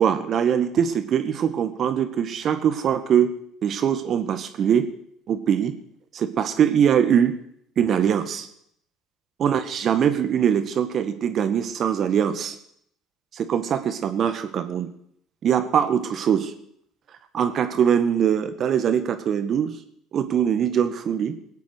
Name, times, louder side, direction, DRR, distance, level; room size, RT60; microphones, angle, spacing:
voice 1, 0.0-3.3 3.6-4.9 5.3-5.7 6.1-7.4 7.8-8.5 9.4-12.5 13.3-14.9 15.4-16.5 17.3-19.8 20.1-21.4, right 8 dB, 50° right, 9 dB, 1.8 m, -22 dB
20.0 x 8.3 x 6.3 m, 0.69 s
hypercardioid pair, 70°, 0 cm